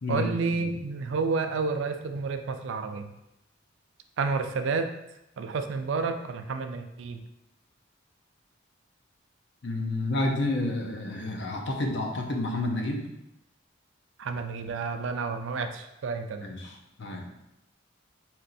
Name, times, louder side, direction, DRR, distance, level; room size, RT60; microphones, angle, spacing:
voice 1, 0.1-3.1 4.2-4.9 5.4-7.2 14.2-16.5, right 4 dB, 65° right, 8 dB, 0.4 m, -30 dB
voice 2, 9.6-13.0 16.4-17.3, left 2 dB, 60° left, 1 dB, 0.7 m, -30 dB
4.3 x 2.6 x 3.9 m, 0.88 s
head